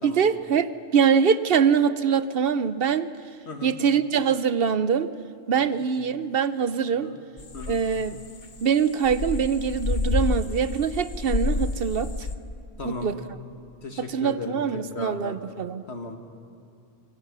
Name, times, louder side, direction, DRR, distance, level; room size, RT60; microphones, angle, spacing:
voice 1, 0.0-3.1 3.6-5.1 5.5-7.1 7.7-8.2 8.6-12.3 12.8-13.1 14.1-15.8, right 7 dB, 65° right, 14 dB, 0.9 m, -23 dB
voice 2, 3.5-3.8 5.5-5.8 6.9-7.2 7.5-7.8 12.8-13.1 13.8-15.4 15.9-16.2, left 3 dB, 80° left, 4 dB, 2.1 m, -36 dB
sound 1, 7.4-12.3, left 3 dB, 45° left, 1.2 m, -29 dB
25.0 x 21.0 x 6.1 m, 2.6 s
omnidirectional pair, 1.1 m